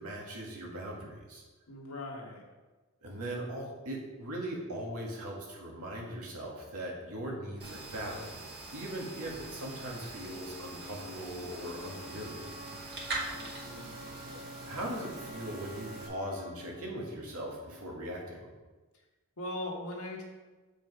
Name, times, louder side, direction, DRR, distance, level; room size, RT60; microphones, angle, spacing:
voice 1, 0.0-1.4 3.0-8.5 8.7-12.5 14.3-14.4 14.7-18.5, right 1 dB, 85° right, -2 dB, 2.0 m, -40 dB
voice 2, 1.7-2.4 13.3-14.0 19.4-20.2, left 1 dB, 80° left, -1 dB, 1.6 m, -40 dB
sound 1, 7.6-16.1, right 2 dB, 50° right, 2.1 m, -43 dB
sound 2, 10.1-18.0, left 1 dB, 30° right, 1.1 m, -49 dB
7.5 x 5.3 x 4.8 m, 1.2 s
head